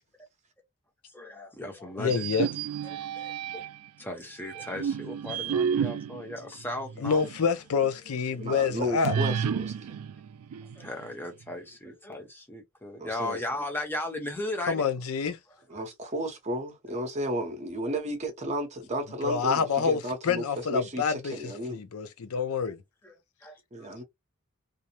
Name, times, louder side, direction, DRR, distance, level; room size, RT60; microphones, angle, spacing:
voice 1, 1.1-2.3 2.8-3.6 4.0-7.2 10.8-14.8 23.0-23.2 23.4-23.6, left 1 dB, 10° left, 0.8 m, -36 dB
voice 2, 2.0-2.5 7.0-9.2 14.7-15.4 19.2-22.8, left 5 dB, 80° left, 0.5 m, -27 dB
sound 1, 2.0-3.9 4.5-7.5 7.8-7.9 9.0-11.1, right 7 dB, 90° right, 0.3 m, -31 dB
voice 3, 8.3-9.9 13.0-13.4 15.7-21.8 23.7-24.0, equal, 30° right, 0.7 m, -33 dB
2.5 x 2.0 x 2.9 m
head